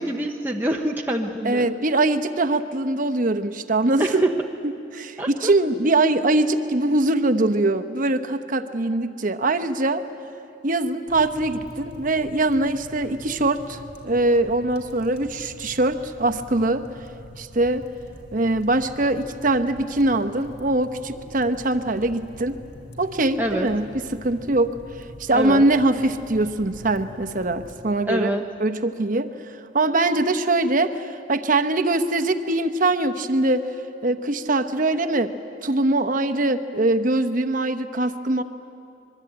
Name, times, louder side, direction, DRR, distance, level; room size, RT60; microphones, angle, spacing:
voice 1, 0.0-1.7 4.0-4.3 5.2-5.5 23.4-23.7 25.3-25.6 28.1-28.5, right 1 dB, 10° right, 0 dB, 0.8 m, -25 dB
voice 2, 1.4-4.2 4.6-10.0 10.6-16.8 17.4-17.8 18.3-22.6 23.0-24.7 25.2-28.3 28.6-33.6 34.0-35.3 35.6-38.4, right 2 dB, 45° right, 9 dB, 0.9 m, -22 dB
sound 1, 11.1-27.8, equal, 55° left, 3.5 m, -44 dB
24.5 x 22.5 x 8.8 m, 2.7 s
head